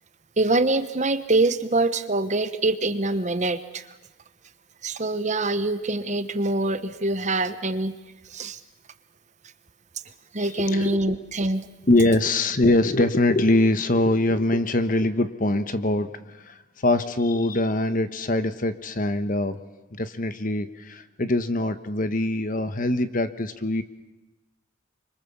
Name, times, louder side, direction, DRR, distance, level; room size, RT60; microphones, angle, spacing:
voice 1, 0.4-3.8 4.8-7.9 8.3-8.6 10.3-11.7, right 2 dB, 35° right, 11 dB, 1.1 m, -24 dB
voice 2, 10.4-11.1 11.9-19.6 19.9-23.8, left 2 dB, 45° left, 11 dB, 1.2 m, -23 dB
26.0 x 24.5 x 7.2 m, 1.1 s
head